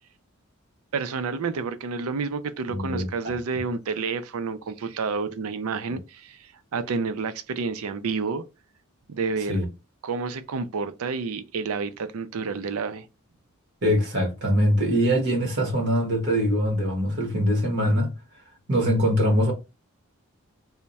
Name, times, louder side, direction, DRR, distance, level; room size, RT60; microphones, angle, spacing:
voice 1, 0.9-8.4 9.1-9.6 10.0-13.1, right 4 dB, 85° right, 0.5 m, -29 dB
voice 2, 2.7-3.4 9.5-9.6 13.8-18.1 18.7-19.5, equal, 50° right, 1.2 m, -23 dB
3.4 x 2.1 x 4.0 m
head